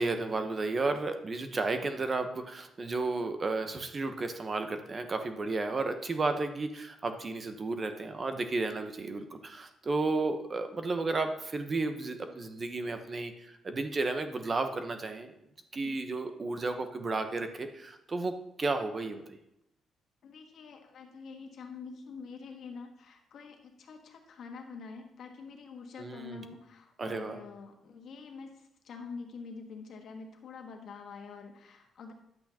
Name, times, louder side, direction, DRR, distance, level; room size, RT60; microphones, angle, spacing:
voice 1, 0.0-15.3 15.7-19.2 26.0-26.4 27.0-27.4, right 3 dB, 35° right, 7 dB, 0.9 m, -33 dB
voice 2, 20.2-32.1, left 5 dB, 65° left, 3 dB, 1.5 m, -46 dB
10.5 x 8.2 x 2.9 m, 0.82 s
cardioid pair, 90°, 0 cm